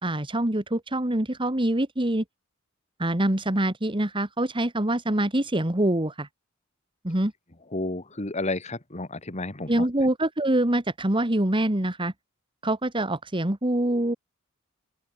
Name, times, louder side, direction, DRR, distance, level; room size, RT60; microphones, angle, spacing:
voice 1, 0.0-2.2 3.0-6.3 7.0-7.3 9.7-12.1 12.6-14.1, right 1 dB, 25° right, 1.9 m, -25 dB
voice 2, 7.7-9.9, left 2 dB, 35° left, 2.2 m, -31 dB
open air
head